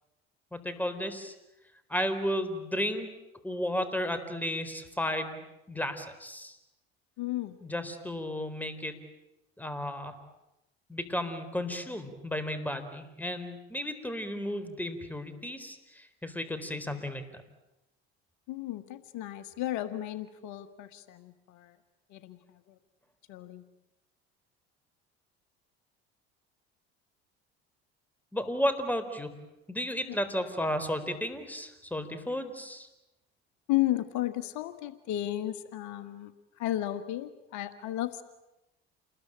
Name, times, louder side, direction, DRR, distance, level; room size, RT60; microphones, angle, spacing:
voice 1, 0.5-1.3 1.9-3.1 3.4-6.6 7.6-9.0 9.6-10.1 10.9-17.4 28.3-29.3 29.7-32.9, equal, 5° left, 10 dB, 4.3 m, -33 dB
voice 2, 7.2-7.6 18.5-21.8 22.1-22.4 22.7-22.8 23.3-23.6 30.1-30.2 33.7-36.3 36.6-38.2, left 14 dB, 70° left, 11 dB, 1.6 m, -33 dB
29.0 x 21.0 x 8.9 m, 0.93 s
hypercardioid pair, 75°, 30 cm